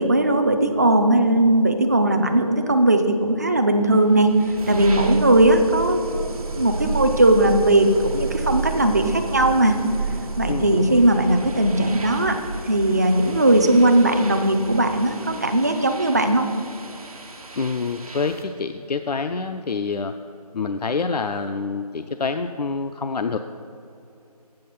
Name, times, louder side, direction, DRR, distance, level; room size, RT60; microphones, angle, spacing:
voice 1, 0.0-4.3 4.7-6.3 6.5-9.8 10.4-12.4 12.7-16.5, right 1 dB, 25° right, 6 dB, 0.4 m, -18 dB
sound 1, 4.0-18.6, right 4 dB, 60° right, 1.1 m, -32 dB
voice 2, 10.5-11.1 17.6-20.1 20.5-23.4, left 4 dB, 85° left, 8 dB, 0.4 m, -27 dB
7.7 x 7.4 x 5.6 m, 2.7 s
figure-of-eight pair, 160°, 20 cm